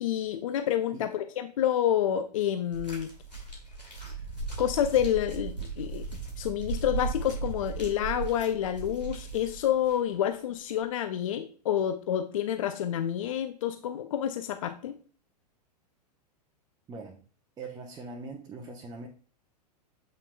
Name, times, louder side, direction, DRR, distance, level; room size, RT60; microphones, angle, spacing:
voice 1, 0.0-3.1 4.6-6.1 6.4-15.0, left 10 dB, 55° left, 9 dB, 0.5 m, -28 dB
sound 1, 2.7-10.0 10.8-10.9, right 4 dB, 85° left, 2.4 m, -37 dB
voice 2, 16.9-17.2 17.6-19.1, right 3 dB, 20° right, 0 dB, 0.8 m, -41 dB
7.8 x 5.8 x 2.2 m, 0.42 s
figure-of-eight pair, 100°, 21 cm